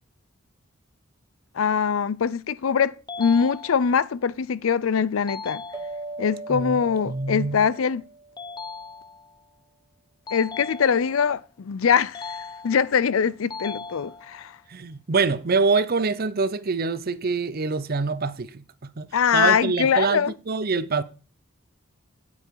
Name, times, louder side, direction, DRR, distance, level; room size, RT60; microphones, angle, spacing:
voice 1, 1.5-5.6 6.2-8.0 10.3-12.4 12.6-14.5 19.1-20.3, left 6 dB, 85° left, 0.5 m, -23 dB
sound 1, 3.1-4.1 5.3-6.3 8.4-9.4 10.3-11.3 12.1-13.1 13.5-14.5, left 4 dB, 20° left, 0.6 m, -38 dB
sound 2, 5.7-8.7, right 2 dB, 20° right, 1.5 m, -39 dB
voice 2, 6.5-7.7 14.7-21.0, right 4 dB, 45° right, 0.7 m, -25 dB
9.0 x 8.3 x 4.7 m
head